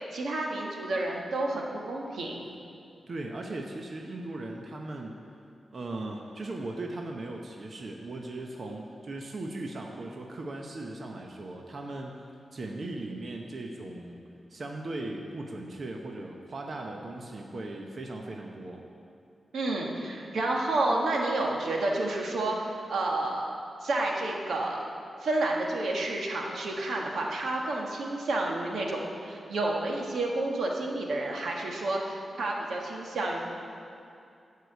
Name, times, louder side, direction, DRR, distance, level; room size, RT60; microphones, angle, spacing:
voice 1, 0.0-2.4 19.5-24.8 25.2-33.4, right 2 dB, 90° right, -1 dB, 1.5 m, -30 dB
voice 2, 3.1-5.2 5.7-12.2 12.5-14.2 14.5-18.8, right 2 dB, 45° right, 1 dB, 0.8 m, -38 dB
13.0 x 4.9 x 8.0 m, 2.6 s
wide cardioid pair, 140°, 0 cm